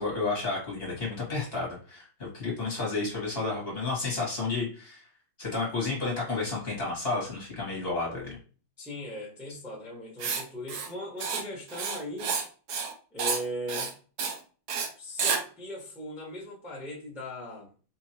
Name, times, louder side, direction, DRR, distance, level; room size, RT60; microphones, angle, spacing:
voice 1, 0.0-5.1 5.4-8.4, left 3 dB, 30° left, 1.4 m, -31 dB
voice 2, 8.8-12.4 13.1-13.9 14.2-14.3 15.0-17.7, left 1 dB, ahead, 1.0 m, -39 dB
Writing, 10.2-10.4 10.7-10.9 11.2-11.4 11.7-12.4 12.7-12.9 13.2-13.4 13.7-13.9 14.2-14.4 14.7-14.9 15.2-15.4, right 5 dB, 75° right, 0.8 m, -30 dB
4.3 x 2.7 x 2.9 m
omnidirectional pair, 2.4 m